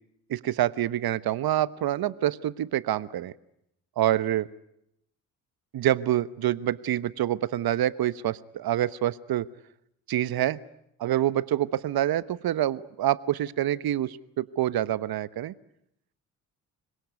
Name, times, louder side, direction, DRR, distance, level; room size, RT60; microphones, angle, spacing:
voice 1, 0.3-3.3 4.0-4.5 5.7-9.5 10.1-10.6 11.0-15.5, right 12 dB, 55° right, 17 dB, 1.2 m, -26 dB
26.0 x 22.0 x 9.5 m, 0.78 s
hypercardioid pair, 45°, 43 cm